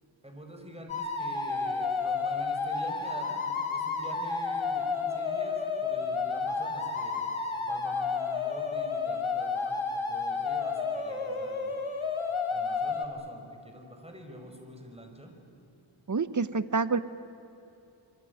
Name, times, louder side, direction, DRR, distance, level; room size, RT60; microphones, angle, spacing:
voice 1, 0.2-7.3 7.6-11.7 12.5-15.3, equal, 10° right, 4 dB, 5.4 m, -46 dB
sound 1, 0.9-13.1, left 4 dB, 75° left, 2.9 m, -31 dB
voice 2, 16.1-17.0, right 4 dB, 35° right, 14 dB, 1.1 m, -27 dB
27.0 x 23.5 x 9.5 m, 2.8 s
wide cardioid pair, 70°, 49 cm